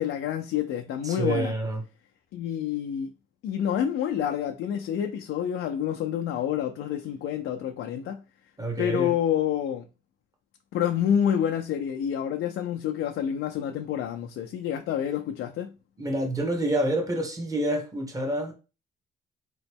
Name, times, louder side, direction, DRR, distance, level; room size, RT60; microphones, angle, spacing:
voice 1, 0.0-1.5 2.3-3.1 3.4-8.2 8.8-9.9 10.7-15.7, left 9 dB, 80° left, 0.5 m, -28 dB
voice 2, 1.0-1.8 8.6-9.1 16.0-18.5, right 1 dB, 15° right, 1.2 m, -28 dB
4.0 x 3.0 x 3.5 m
cardioid pair, 90°, 20 cm